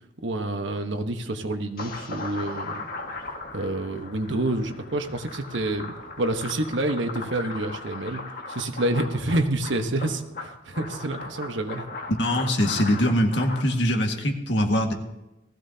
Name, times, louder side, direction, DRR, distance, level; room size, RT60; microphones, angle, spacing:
voice 1, 0.2-2.9 3.5-8.2 8.5-11.8, right 1 dB, 85° right, 6 dB, 1.2 m, -28 dB
sound 1, 1.8-13.6, left 3 dB, 50° left, 1.7 m, -38 dB
voice 2, 12.2-14.9, equal, 75° left, 3 dB, 1.8 m, -23 dB
19.0 x 15.0 x 2.8 m, 0.94 s
head